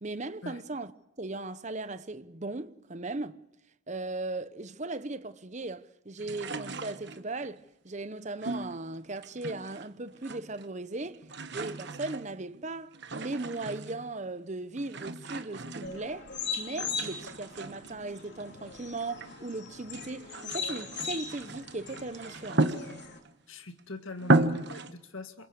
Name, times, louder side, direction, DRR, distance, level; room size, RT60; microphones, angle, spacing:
voice 1, 0.0-0.9 1.2-3.4 3.9-11.2 11.5-22.7, right 2 dB, 35° right, 0.8 m, -38 dB
Gas Canister, 6.2-7.5 8.4-9.9 10.1-10.8 11.0-14.1 14.8-16.4 16.8-19.4 19.8-23.3 23.8-23.9 24.2-24.9, right 2 dB, 55° right, 1.2 m, -34 dB
sound 1, 15.8-23.2, left 5 dB, 55° left, 3.0 m, -39 dB
voice 2, 23.5-25.5, left 2 dB, 70° left, 2.0 m, -43 dB
27.5 x 22.0 x 7.0 m
head